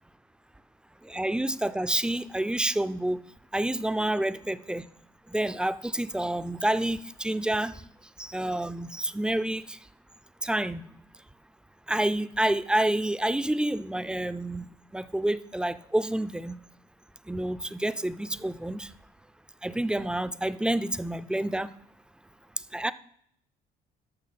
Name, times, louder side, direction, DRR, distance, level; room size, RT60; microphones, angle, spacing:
voice 1, 1.1-3.2 3.5-4.8 5.3-7.7 8.2-9.8 10.4-10.8 11.9-14.7 14.9-16.6 17.3-18.9 19.6-21.7 22.7-22.9, right 1 dB, 5° right, 14 dB, 0.4 m, -28 dB
13.5 x 6.0 x 4.1 m, 0.68 s
cardioid pair, 110°, 17 cm